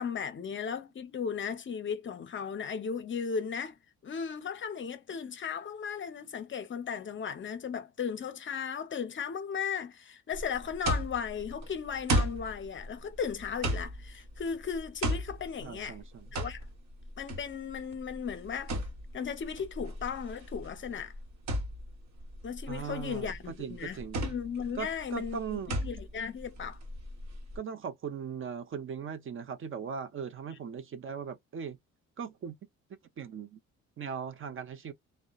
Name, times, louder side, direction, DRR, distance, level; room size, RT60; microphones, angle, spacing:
voice 1, 0.0-16.0 16.3-16.6 17.2-18.7 19.1-21.1 22.4-26.8, left 7 dB, 40° left, 0.5 m, -36 dB
sound 1, 10.3-27.6, right 1 dB, 65° right, 1.0 m, -36 dB
voice 2, 15.6-16.3 22.7-24.2 24.8-25.8 27.6-31.8 32.2-32.5 33.2-33.6 34.0-34.9, right 6 dB, 45° right, 0.5 m, -39 dB
2.7 x 2.1 x 2.3 m
cardioid pair, 90°, 30 cm